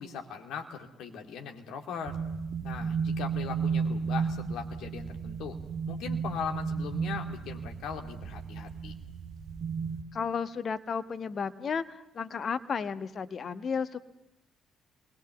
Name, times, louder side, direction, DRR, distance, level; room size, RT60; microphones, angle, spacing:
voice 1, 0.0-2.2 2.6-5.6 5.9-8.9, left 7 dB, 60° left, 3 dB, 2.6 m, -39 dB
sound 1, 2.1-10.0, right 6 dB, 55° right, 1.6 m, -33 dB
voice 2, 10.1-14.0, left 6 dB, 40° left, 12 dB, 1.2 m, -33 dB
27.5 x 21.0 x 7.2 m, 0.93 s
figure-of-eight pair, 45°, 0 cm